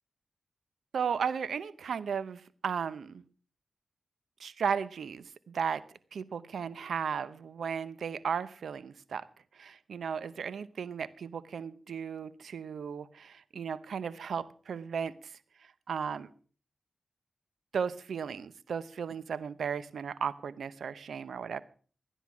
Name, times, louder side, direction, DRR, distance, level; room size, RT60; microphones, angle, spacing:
voice 1, 0.9-3.2 4.4-5.8 6.1-9.3 9.5-15.4 15.9-16.3 17.7-21.6, right 6 dB, 90° right, 16 dB, 0.8 m, -35 dB
14.0 x 10.0 x 6.1 m, 0.42 s
cardioid pair, 55°, 0 cm